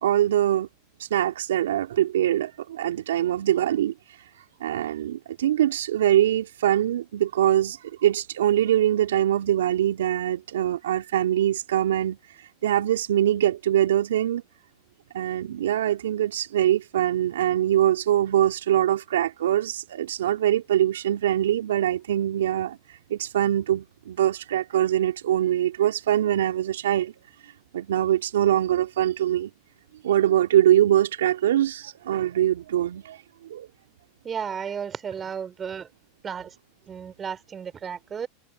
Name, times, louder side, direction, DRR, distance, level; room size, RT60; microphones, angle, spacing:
voice 1, 0.0-0.7 1.0-3.9 4.6-12.2 12.6-14.4 15.1-22.8 23.1-27.1 27.7-29.5 30.0-33.2 33.5-33.7, right 12 dB, 75° right, 2.5 m, -23 dB
voice 2, 34.2-35.9 36.2-36.5 36.9-38.3, right 7 dB, 25° right, 3.6 m, -33 dB
hypercardioid pair, 90°, 0 cm